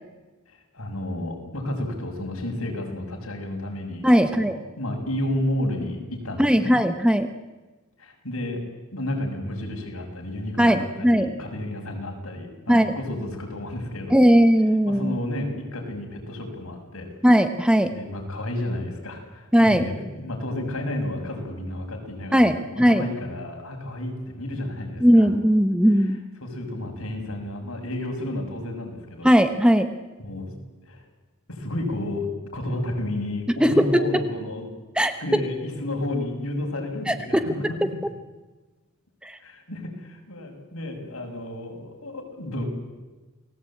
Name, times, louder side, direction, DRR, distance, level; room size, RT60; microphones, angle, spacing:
voice 1, 0.5-6.7 8.0-8.6 8.9-14.3 14.9-17.1 17.9-25.3 26.4-29.3 30.2-30.6 30.9-31.0 31.5-34.7 35.2-38.0 39.4-42.6, left 1 dB, 70° left, 3 dB, 6.3 m, -31 dB
voice 2, 4.0-4.6 6.4-7.3 10.6-11.3 12.7-13.0 14.1-15.2 17.2-17.9 19.5-19.9 22.3-23.1 25.0-26.2 29.2-29.9 33.6-34.1 35.0-35.4 37.1-37.4 37.8-37.9 39.2-39.3, equal, 5° right, 8 dB, 1.1 m, -18 dB
29.5 x 19.5 x 8.7 m, 1.2 s
head